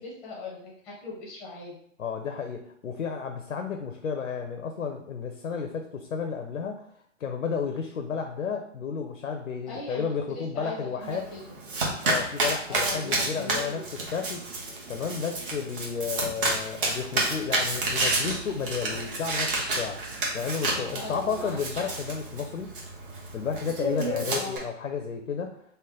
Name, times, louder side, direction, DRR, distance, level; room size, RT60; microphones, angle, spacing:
voice 1, 0.0-1.7 9.7-11.4 12.7-13.9 20.9-21.5 21.8-21.9 24.1-24.6, left 2 dB, 5° left, -4 dB, 0.6 m, -39 dB
voice 2, 2.0-6.9 7.2-11.2 12.0-13.8 14.1-14.4 14.9-20.0 20.3-22.7 23.3-25.5, left 6 dB, 90° left, 4 dB, 0.6 m, -32 dB
Domestic sounds home sounds, 11.0-24.6, right 2 dB, 45° right, 1.0 m, -30 dB
3.3 x 2.1 x 3.7 m, 0.67 s
hypercardioid pair, 140°, 38 cm